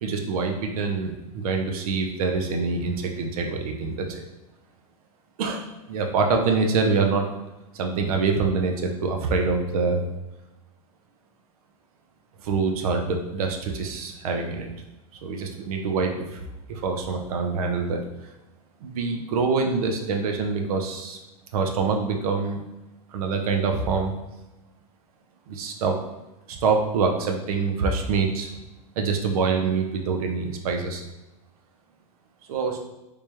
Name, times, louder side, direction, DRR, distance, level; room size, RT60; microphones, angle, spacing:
voice 1, 0.0-4.2 5.4-7.3 7.7-10.1 12.4-14.7 15.2-18.0 18.8-21.2 21.5-22.6 23.1-24.1 25.5-26.0 26.5-28.5 29.0-31.0 32.5-32.8, right 4 dB, 75° right, 3 dB, 0.7 m, -25 dB
3.4 x 3.3 x 3.0 m, 1.0 s
supercardioid pair, 155°, 19 cm